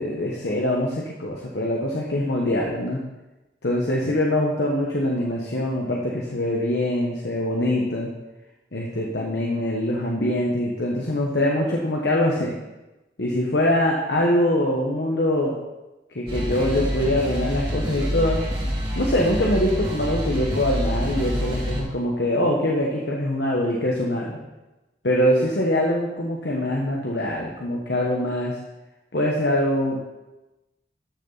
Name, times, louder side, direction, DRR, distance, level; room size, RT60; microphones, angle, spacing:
voice 1, 0.0-3.0 3.6-8.1 8.7-12.6 13.2-15.5 16.1-18.4 18.9-24.4 25.0-28.6 29.1-30.1, left 1 dB, 65° left, -2 dB, 1.3 m, -23 dB
sound 1, 16.3-21.8, equal, 30° right, 2.5 m, -27 dB
12.5 x 6.8 x 4.1 m, 1.0 s
head